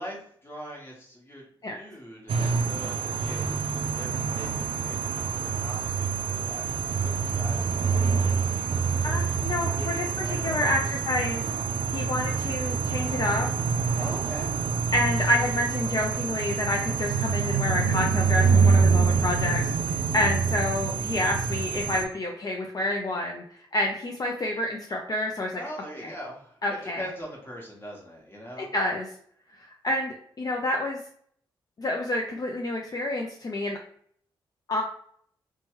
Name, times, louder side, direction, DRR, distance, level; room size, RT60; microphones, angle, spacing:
voice 1, 0.0-9.0 9.7-11.0 14.0-14.5 25.5-28.7, equal, 20° left, -2 dB, 1.3 m, -42 dB
sound 1, 2.3-22.0, right 5 dB, 70° right, 0.4 m, -26 dB
voice 2, 9.0-11.4 11.9-13.5 14.9-23.4 23.7-25.6 26.0-26.1 26.6-27.1 28.6-29.1 29.5-31.0 31.8-33.8 34.7-34.8, left 1 dB, 40° left, 1 dB, 0.5 m, -28 dB
2.9 x 2.3 x 3.0 m, 0.62 s
supercardioid pair, 50°, 10 cm